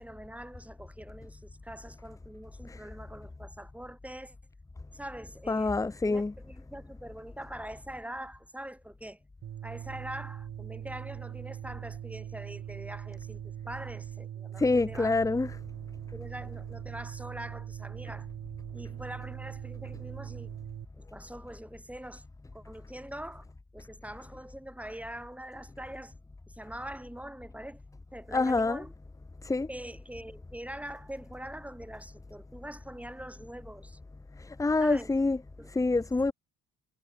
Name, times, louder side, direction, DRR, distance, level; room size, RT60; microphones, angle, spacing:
voice 1, 0.0-4.4 4.9-5.7 6.0-9.2 9.6-15.2 16.1-18.3 18.7-20.5 21.0-22.2 22.5-23.4 23.7-26.1 26.5-27.8 28.1-28.9 29.7-34.0 34.8-35.1 35.6-35.7 36.2-36.3, right 1 dB, 5° right, 4.7 m, -43 dB
voice 2, 5.5-6.3 14.6-15.5 28.3-28.8 29.4-29.7 34.4-35.4 35.7-36.3, left 3 dB, 10° left, 0.6 m, -26 dB
sound 1, 9.4-20.8, right 10 dB, 55° right, 1.1 m, -41 dB
cardioid pair, 90°, 30 cm